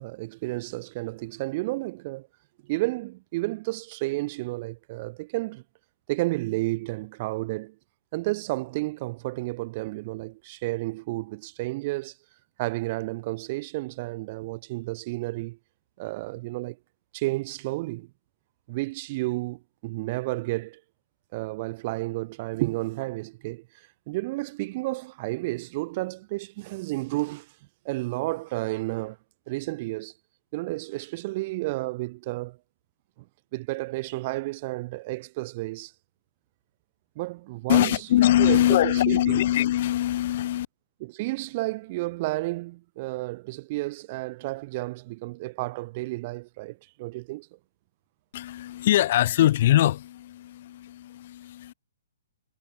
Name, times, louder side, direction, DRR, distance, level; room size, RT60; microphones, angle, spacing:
voice 1, 0.0-2.3 2.6-5.6 6.1-7.7 8.1-12.1 12.6-15.6 16.0-16.8 17.1-18.1 18.7-20.8 21.3-23.6 24.1-27.5 27.8-29.2 29.5-30.1 30.5-32.6 33.5-35.9 37.2-37.9 38.4-39.4 41.0-47.5, right 21 dB, 40° right, 1.4 m, -31 dB
voice 2, 37.7-40.7 48.3-51.7, left 13 dB, 50° left, 4.1 m, -22 dB
hypercardioid pair, 145°, 0 cm